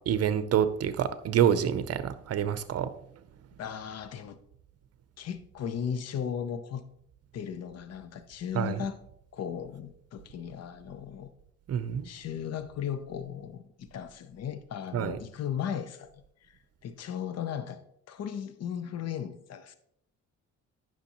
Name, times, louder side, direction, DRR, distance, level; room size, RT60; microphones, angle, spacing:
voice 1, 0.0-2.9 8.5-8.8 11.7-12.1 14.9-15.2, right 9 dB, 55° right, 0.7 m, -27 dB
voice 2, 3.6-4.4 5.2-6.8 7.3-9.0 9.3-11.3 12.0-16.1 16.5-17.8 18.1-19.7, left 8 dB, 55° left, 0.7 m, -36 dB
9.6 x 5.9 x 3.0 m
cardioid pair, 90°, 30 cm